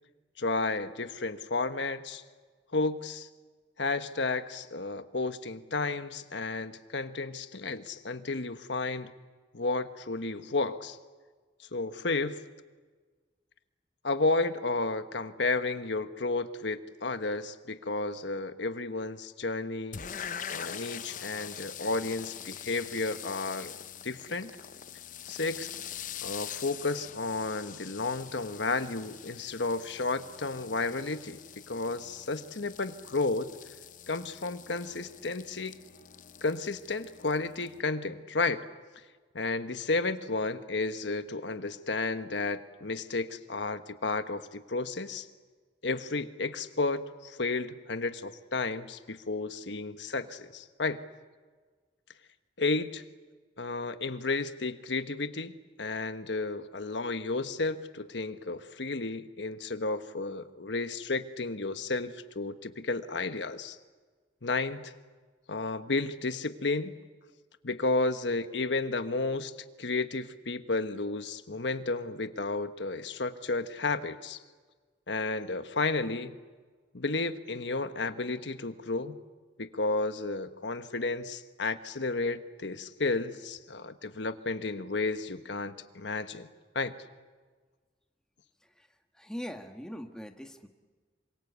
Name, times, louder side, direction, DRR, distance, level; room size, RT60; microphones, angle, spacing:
voice 1, 0.4-2.2 2.7-3.3 3.8-9.1 9.5-11.0 11.7-12.4 14.0-20.0 20.5-23.8 24.0-24.5 25.3-25.7 26.2-31.4 31.7-33.5 34.1-35.7 36.4-38.6 39.3-45.3 45.8-51.0 52.6-53.0 53.6-63.8 64.4-64.9 65.5-66.9 67.6-69.5 69.8-74.4 75.1-76.4 76.9-79.2 79.6-86.5 86.7-86.9, left 3 dB, 90° left, 9 dB, 1.3 m, -32 dB
sound 1, 19.9-37.8, left 9 dB, 45° left, 0.7 m, -44 dB
voice 2, 88.6-90.7, equal, 5° left, 4 dB, 1.7 m, -42 dB
27.5 x 25.5 x 8.2 m, 1.4 s
head